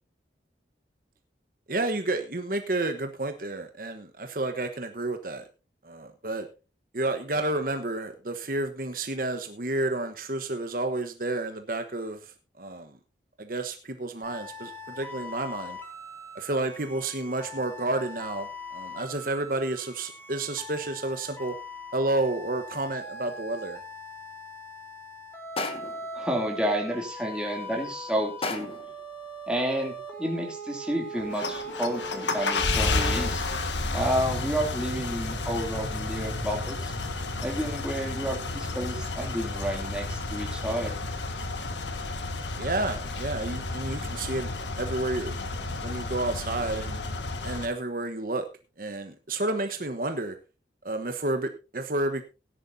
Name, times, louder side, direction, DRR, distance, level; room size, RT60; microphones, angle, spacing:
voice 1, 1.7-5.5 5.8-6.5 6.9-13.0 13.4-15.8 16.3-21.5 21.9-23.8 42.6-45.4 45.8-47.0 47.4-48.5 48.8-50.4 50.8-52.2, right 2 dB, 50° right, 6 dB, 1.1 m, -30 dB
sound 1, 14.2-33.3, equal, 15° left, 3.7 m, -40 dB
sound 2, 25.6-26.1 28.4-29.0, left 3 dB, 30° left, 1.4 m, -33 dB
voice 2, 26.1-28.7 29.5-29.9 30.2-33.5 33.9-36.9 37.4-41.0, equal, 5° right, 0 dB, 2.8 m, -30 dB
sound 3, 31.2-47.7, left 3 dB, 90° left, 1.7 m, -31 dB
17.5 x 10.5 x 2.7 m, 0.30 s
head